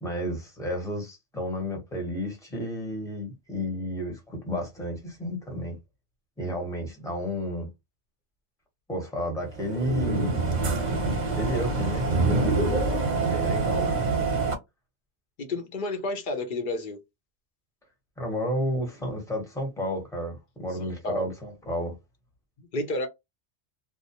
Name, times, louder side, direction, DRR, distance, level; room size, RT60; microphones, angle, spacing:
voice 1, 0.0-5.8 6.4-7.7 8.9-10.4 11.4-12.0 13.1-14.1 18.2-21.9, equal, 5° left, 0.9 m, -32 dB
sound 1, 9.5-14.5, right 3 dB, 45° right, 0.7 m, -25 dB
voice 2, 15.4-17.0 21.0-21.3 22.6-23.1, left 2 dB, 50° left, 0.8 m, -30 dB
2.6 x 2.0 x 2.8 m
omnidirectional pair, 1.2 m